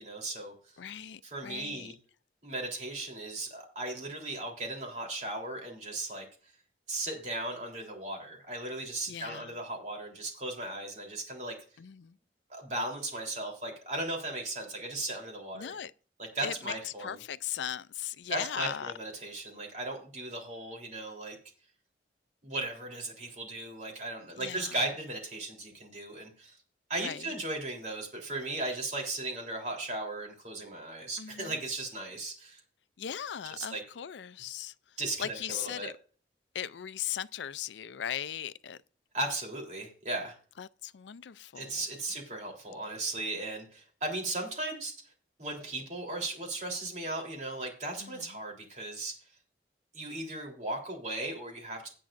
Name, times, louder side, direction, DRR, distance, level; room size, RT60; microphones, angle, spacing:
voice 1, 0.0-0.8 1.2-1.9 2.4-6.3 6.9-11.6 12.5-15.7 16.2-17.2 18.3-21.4 22.4-26.6 26.9-32.6 33.5-33.8 35.0-35.9 39.1-40.4 41.5-44.9 45.4-49.1 49.9-51.9, right 2 dB, 40° right, 3.5 m, -37 dB
voice 2, 0.8-1.9 9.1-9.5 11.8-12.1 15.5-15.9 16.4-18.9 24.4-24.7 27.0-27.3 31.2-31.5 33.0-34.7 35.2-35.9 36.5-38.8 40.6-41.8 48.0-48.3, left 9 dB, 80° left, 0.4 m, -38 dB
17.5 x 8.6 x 2.5 m
head